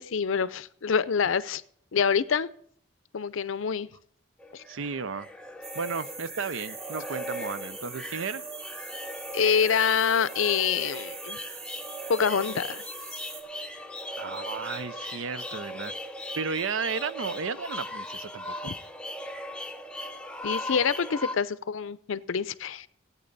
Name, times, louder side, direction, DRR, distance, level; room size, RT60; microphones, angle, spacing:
voice 1, 0.0-1.6 1.9-2.5 3.1-3.9 4.5-4.6 9.3-11.4 12.1-12.8 18.7-18.8 20.4-22.9, left 6 dB, 80° left, 0.5 m, -26 dB
sound 1, 4.4-21.4, left 1 dB, 5° left, 0.5 m, -38 dB
voice 2, 4.7-5.3 5.7-8.4 14.2-15.9 16.3-18.7, right 5 dB, 80° right, 0.6 m, -33 dB
sound 2, 5.6-13.4, right 4 dB, 30° right, 1.9 m, -42 dB
17.0 x 8.8 x 4.0 m
head